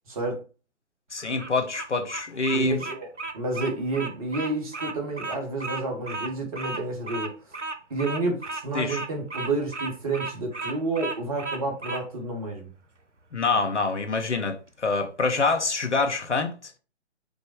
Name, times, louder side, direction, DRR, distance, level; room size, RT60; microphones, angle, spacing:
voice 1, 0.1-0.4 2.5-3.1 3.3-7.3 7.9-12.7, right 2 dB, 30° right, 1.2 m, -30 dB
voice 2, 1.1-2.8 8.7-9.0 13.3-16.7, left 3 dB, 75° left, 0.9 m, -26 dB
Bird vocalization bird call bird song, 1.2-12.0, right 3 dB, 90° right, 0.7 m, -34 dB
5.2 x 2.0 x 4.8 m
figure-of-eight pair, 135°, 35 cm